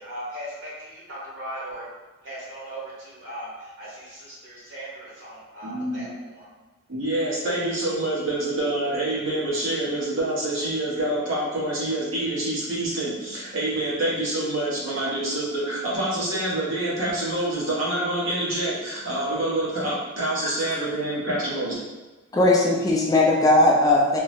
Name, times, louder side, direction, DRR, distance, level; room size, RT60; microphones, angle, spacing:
voice 1, 0.0-1.8 2.2-6.5, right 1 dB, 60° right, -8 dB, 1.4 m, -38 dB
voice 2, 5.6-6.1 6.9-21.8, right 1 dB, 80° right, -7 dB, 1.0 m, -26 dB
voice 3, 22.3-24.2, left 2 dB, 20° left, -3 dB, 0.3 m, -18 dB
3.4 x 2.1 x 3.0 m, 1.2 s
head